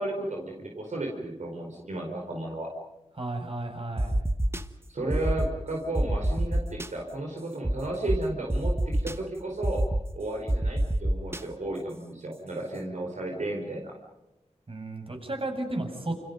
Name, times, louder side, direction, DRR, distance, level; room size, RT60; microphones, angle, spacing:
voice 1, 0.0-2.7 4.9-9.8 10.2-13.9, right 1 dB, 80° right, 0 dB, 4.8 m, -33 dB
voice 2, 3.2-4.2 14.7-16.3, right 2 dB, 50° right, 3 dB, 7.1 m, -33 dB
sound 1, 4.0-4.6 5.1-5.5 6.0-6.9 7.6-7.7 8.1-8.2 8.5-9.1 9.6-10.0 10.5-11.4, right 1 dB, 20° right, 1.4 m, -25 dB
29.0 x 29.0 x 5.4 m, 0.97 s
wide cardioid pair, 70°, 12 cm